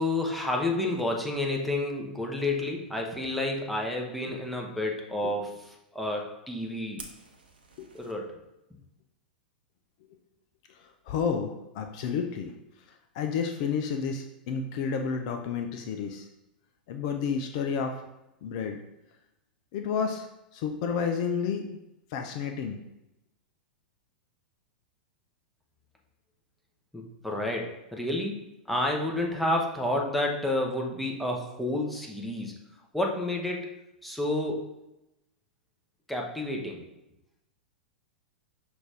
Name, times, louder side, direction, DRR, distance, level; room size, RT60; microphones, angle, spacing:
voice 1, 0.0-5.5 5.9-7.0 7.9-8.4 26.9-28.4 28.7-32.5 32.9-33.7 34.0-34.6 36.1-36.8, left 1 dB, ahead, -1 dB, 0.8 m, -30 dB
Fire, 7.0-8.1, right 4 dB, 75° right, 0.7 m, -47 dB
voice 2, 11.1-12.5 13.1-16.3 16.9-18.0 18.4-18.8 19.7-20.3 20.5-21.8 22.1-22.8, left 6 dB, 45° left, 5 dB, 0.4 m, -30 dB
6.0 x 2.5 x 3.4 m, 0.91 s
figure-of-eight pair, 95°, 5 cm